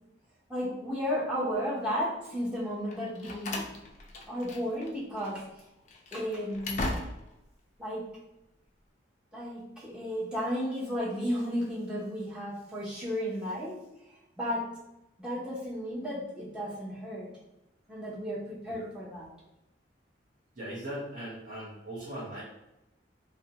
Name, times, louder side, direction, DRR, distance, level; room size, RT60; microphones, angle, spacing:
voice 1, 0.5-3.7 4.3-5.5 6.1-6.9 7.8-8.1 9.3-13.8 14.4-14.7 15.2-17.3 17.9-19.3, equal, 5° right, -7 dB, 0.6 m, -33 dB
Slam, 2.9-4.9 5.2-5.3 5.9-7.4, left 2 dB, 40° left, 0.3 m, -38 dB
voice 2, 20.6-22.4, right 1 dB, 45° right, -10 dB, 0.8 m, -39 dB
2.5 x 2.1 x 2.8 m, 0.90 s
head